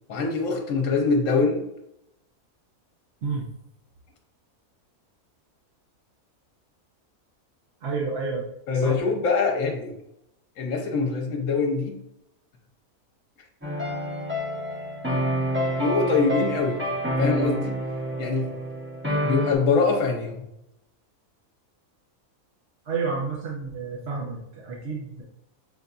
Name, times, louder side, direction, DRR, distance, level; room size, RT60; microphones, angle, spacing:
voice 1, 0.1-1.6 8.7-9.9 10.6-12.0 15.1-15.2 15.8-16.8 17.2-17.8 18.2-18.5 19.2-20.4, left 4 dB, 65° left, 2 dB, 1.1 m, -23 dB
voice 2, 3.2-3.5 7.8-8.4 8.7-9.0 22.9-25.2, right 4 dB, 55° right, -3 dB, 0.8 m, -30 dB
sound 1, 13.6-19.5, equal, 10° right, 0.6 m, -28 dB
6.6 x 2.6 x 2.3 m, 0.81 s
omnidirectional pair, 1.5 m